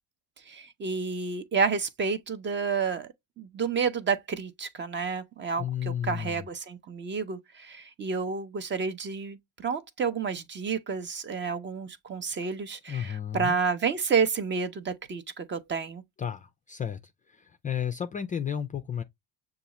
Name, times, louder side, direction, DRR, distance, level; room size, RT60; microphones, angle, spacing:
voice 1, 0.5-3.1 3.4-16.0, right 5 dB, 30° right, 0.7 m, -30 dB
voice 2, 5.6-6.5 12.9-13.6 16.2-17.0 17.3-19.0, left 9 dB, 25° left, 0.3 m, -32 dB
6.7 x 2.4 x 2.9 m
cardioid pair, 125°, 37 cm